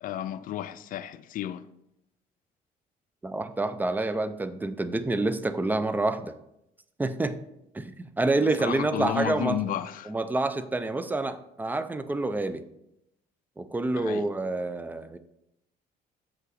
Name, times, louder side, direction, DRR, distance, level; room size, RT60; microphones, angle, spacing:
voice 1, 0.0-1.6 8.4-10.1 14.0-14.3, left 11 dB, 55° left, 0.4 m, -32 dB
voice 2, 3.2-6.3 7.0-7.4 7.7-9.6 10.1-12.6 13.6-15.2, right 2 dB, 10° right, 0.5 m, -28 dB
7.1 x 5.5 x 4.0 m
cardioid pair, 110°, 17 cm